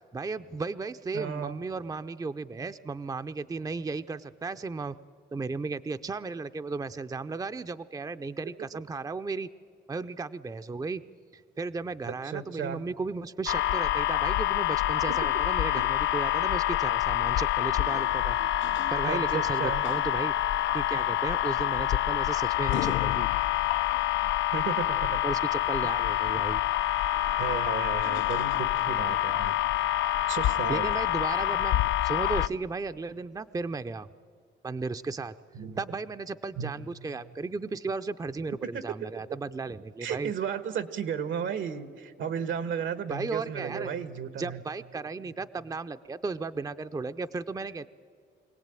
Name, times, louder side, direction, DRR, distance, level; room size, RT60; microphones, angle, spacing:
voice 1, 0.1-5.0 5.3-9.5 9.9-11.0 11.3-18.4 18.9-20.4 20.7-23.3 25.2-26.6 30.7-31.8 32.0-34.1 34.6-35.4 35.8-40.3 43.1-43.9 44.4-47.9, right 4 dB, 20° right, 10 dB, 0.6 m, -35 dB
voice 2, 1.1-1.6 12.0-12.8 15.7-15.8 19.1-19.8 24.5-25.2 27.4-29.6 30.3-30.9 35.5-35.8 36.6-36.7 38.7-38.8 40.0-44.6, right 7 dB, 75° right, 13 dB, 1.4 m, -34 dB
sound 1, 13.5-32.5, left 13 dB, 75° left, 0.5 m, -27 dB
24.5 x 17.5 x 9.1 m, 2.2 s
cardioid pair, 90°, 20 cm